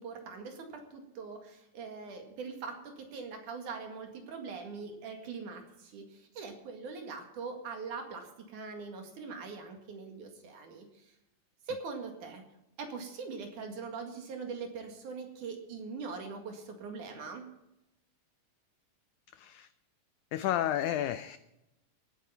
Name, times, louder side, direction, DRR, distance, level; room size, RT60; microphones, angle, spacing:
voice 1, 0.0-11.1 11.7-12.4 12.8-17.5, right 4 dB, 65° right, 4 dB, 3.3 m, -42 dB
voice 2, 19.3-19.7 20.3-21.4, left 12 dB, 85° left, 12 dB, 1.7 m, -31 dB
18.0 x 9.1 x 5.7 m, 0.90 s
omnidirectional pair, 4.1 m